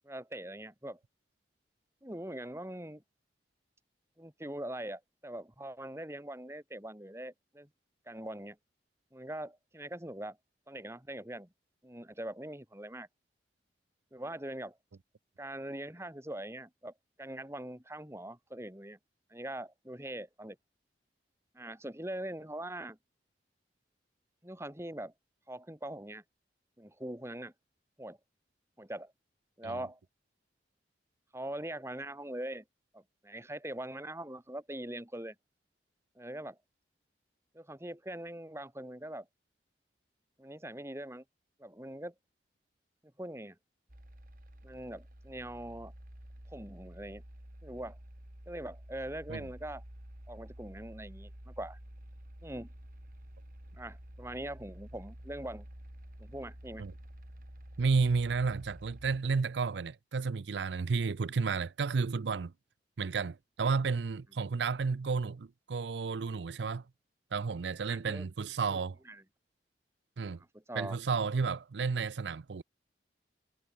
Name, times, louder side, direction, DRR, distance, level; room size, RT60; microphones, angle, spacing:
voice 1, 0.0-1.0 2.0-3.0 4.2-7.7 8.1-8.6 9.1-10.4 10.7-11.5 11.8-13.1 14.1-14.8 15.4-16.9 17.2-19.0 19.3-20.6 21.5-23.0 24.4-25.1 25.5-26.2 26.8-27.5 28.0-28.2 28.8-29.1 29.6-30.0 31.3-32.6 32.9-35.4 36.2-36.6 37.5-39.3 40.4-41.2 41.6-42.1 43.2-43.6 44.6-45.9 46.5-47.2 47.6-48.0 48.5-49.8 50.3-51.8 52.4-52.7 53.8-55.7 56.2-56.9 67.9-68.3 68.7-68.8 69.1-69.2 70.4-71.0, right 1 dB, 15° right, 3.6 m, -42 dB
sound 1, 43.9-59.2, equal, 50° right, 3.2 m, -50 dB
voice 2, 57.8-62.5 63.0-66.8 67.3-69.0 70.2-70.4 70.8-72.6, right 4 dB, 80° right, 0.5 m, -32 dB
head